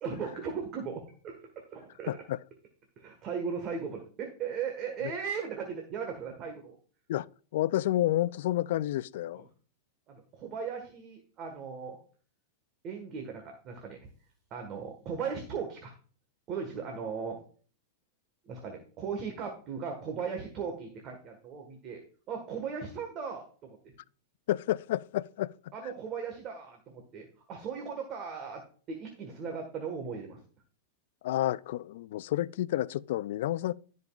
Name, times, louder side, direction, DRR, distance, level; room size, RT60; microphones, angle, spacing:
voice 1, 0.0-2.2 3.0-6.8 9.3-9.5 10.1-12.0 12.8-14.1 14.5-15.9 16.5-17.4 18.4-22.0 22.3-23.9 25.7-28.6 28.9-30.4, right 6 dB, 35° right, 1.5 m, -37 dB
voice 2, 2.1-2.4 7.1-7.3 7.5-9.4 24.5-25.5 31.2-33.7, left 14 dB, 70° left, 0.3 m, -30 dB
15.5 x 5.3 x 2.4 m
hypercardioid pair, 125°, 0 cm